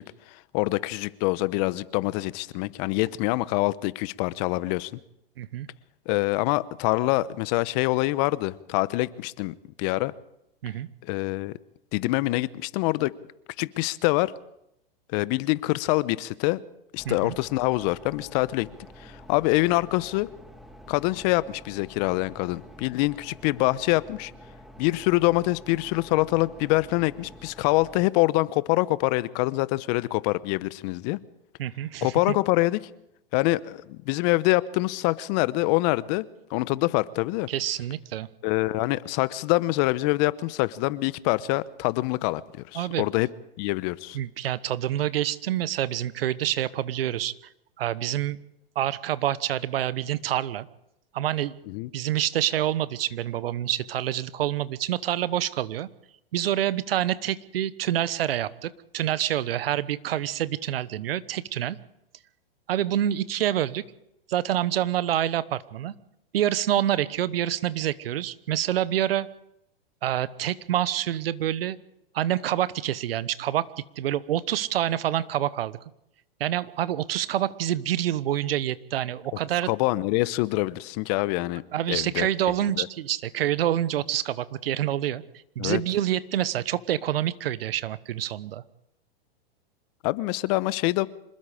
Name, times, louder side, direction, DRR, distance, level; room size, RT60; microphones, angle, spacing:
voice 1, 0.0-5.0 6.1-10.1 11.0-11.5 11.9-13.1 13.6-14.3 15.1-16.6 16.9-18.7 19.0-20.3 20.9-24.3 24.8-31.2 32.0-32.8 33.3-36.2 36.5-37.5 38.4-43.3 43.6-44.2 51.7-51.9 79.7-81.6 81.9-82.3 82.8-82.9 85.6-85.8 90.0-91.1, left 20 dB, 45° left, 17 dB, 1.0 m, -25 dB
voice 2, 5.4-5.7 10.6-10.9 17.0-17.3 31.6-32.4 37.5-38.3 42.7-43.0 44.1-47.3 47.8-48.4 48.7-50.7 51.1-51.6 51.9-55.9 56.3-61.8 62.7-63.8 64.3-65.9 66.3-69.3 70.0-71.8 72.1-73.7 74.0-75.8 76.4-79.7 81.7-85.2 85.6-88.6, right 12 dB, 75° right, 17 dB, 1.1 m, -27 dB
sound 1, 17.0-28.1, equal, ahead, 2.5 m, -48 dB
26.0 x 20.5 x 5.1 m, 0.81 s
hypercardioid pair, 120°, 30 cm